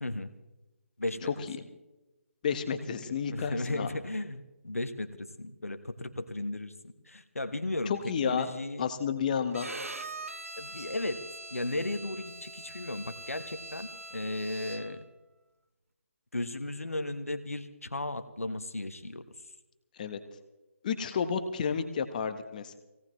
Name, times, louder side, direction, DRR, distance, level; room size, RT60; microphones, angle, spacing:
voice 1, 0.0-0.3 1.0-1.5 2.9-6.7 7.0-8.8 10.6-15.0 16.3-19.2, left 2 dB, 85° left, 9 dB, 1.3 m, -35 dB
voice 2, 1.2-1.6 2.4-3.9 7.9-8.5 8.8-9.7 20.0-20.2 20.8-22.7, left 6 dB, 35° left, 8 dB, 1.2 m, -31 dB
Bowed string instrument, 9.5-15.1, right 2 dB, 85° right, 1.1 m, -43 dB
21.5 x 17.5 x 3.2 m, 1.0 s
figure-of-eight pair, 150°, 7 cm